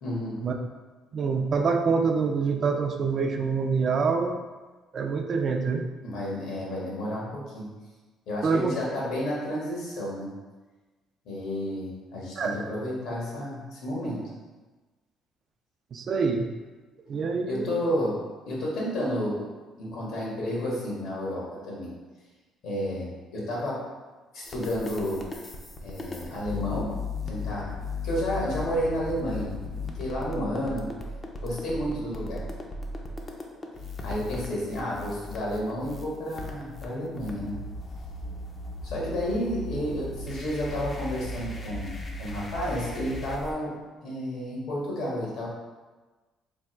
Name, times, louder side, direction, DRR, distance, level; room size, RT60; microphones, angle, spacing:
voice 1, 0.0-0.4 6.0-7.7 8.3-10.3 11.2-14.3 17.5-18.2 18.4-19.5 19.8-21.9 22.6-23.9 24.3-25.3 25.8-26.9 27.3-27.7 28.0-30.9 31.4-32.5 34.0-37.6 38.8-43.7 44.0-45.5, equal, 75° left, -5 dB, 1.4 m, -31 dB
voice 2, 1.1-4.4 4.9-5.9 8.4-8.7 12.4-12.6 15.9-16.5 17.1-17.8, right 5 dB, 45° right, 5 dB, 0.4 m, -26 dB
sound 1, 24.4-43.5, left 2 dB, 30° left, 0.5 m, -37 dB
3.4 x 2.3 x 4.3 m, 1.3 s
cardioid pair, 120°, 0 cm